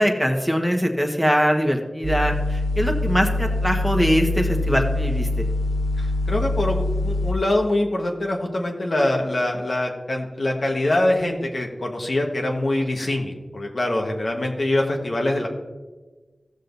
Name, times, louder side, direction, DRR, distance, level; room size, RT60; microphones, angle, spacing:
voice 1, 0.0-5.4, equal, ahead, 2 dB, 1.3 m, -22 dB
sound 1, 2.0-7.3, left 2 dB, 65° right, 0.7 m, -24 dB
voice 2, 6.0-15.5, left 1 dB, 65° left, 1 dB, 1.3 m, -24 dB
16.0 x 6.5 x 2.7 m, 1.3 s
cardioid pair, 45°, 0 cm